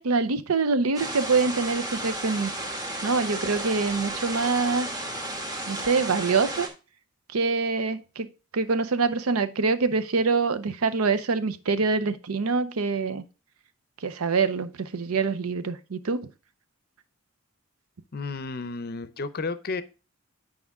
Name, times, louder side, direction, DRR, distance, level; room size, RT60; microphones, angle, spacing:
voice 1, 0.0-2.5 3.0-4.9 5.7-6.7 7.3-13.2 14.0-16.3, right 4 dB, 80° right, 0.6 m, -25 dB
sound 1, 0.9-6.7, right 1 dB, 20° right, 1.2 m, -33 dB
voice 2, 18.1-19.8, left 3 dB, 45° left, 0.6 m, -32 dB
9.5 x 4.9 x 3.6 m
head